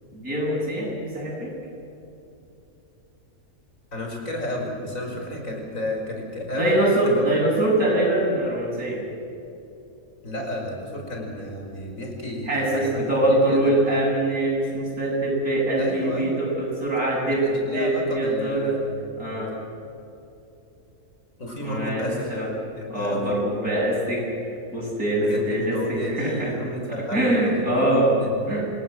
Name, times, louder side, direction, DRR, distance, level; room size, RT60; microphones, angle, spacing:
voice 1, 0.1-1.5 6.5-9.0 12.5-17.4 17.7-18.8 19.2-19.5 21.6-22.5 22.9-24.2 24.7-26.5 26.9-28.1 28.5-28.6, right 1 dB, 80° right, -3 dB, 8.6 m, -23 dB
voice 2, 3.9-6.8 7.1-7.4 10.2-13.7 15.8-16.4 17.3-19.0 21.4-22.3 22.8-23.3 25.2-27.8 28.1-28.3, left 1 dB, 65° left, 0 dB, 5.6 m, -32 dB
26.5 x 19.5 x 7.7 m, 2.8 s
omnidirectional pair, 1.5 m